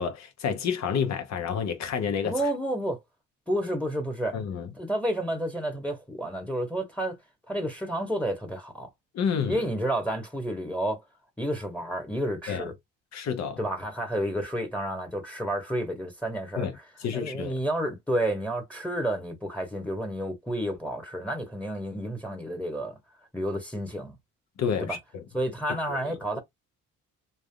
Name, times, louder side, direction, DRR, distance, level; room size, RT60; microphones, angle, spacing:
voice 1, 0.0-2.3 4.3-4.7 9.1-9.6 12.5-12.6 13.1-13.6 16.6-16.7 17.0-17.6 24.6-25.2 25.9-26.1, left 7 dB, 60° left, 0.8 m, -29 dB
voice 2, 2.2-3.0 3.5-4.4 4.8-7.2 7.5-8.9 9.5-11.0 11.4-12.7 13.6-16.7 17.1-23.0 23.3-24.2 24.8-25.0 25.3-26.4, right 1 dB, 5° left, 1.0 m, -30 dB
3.4 x 2.4 x 2.2 m
cardioid pair, 90°, 30 cm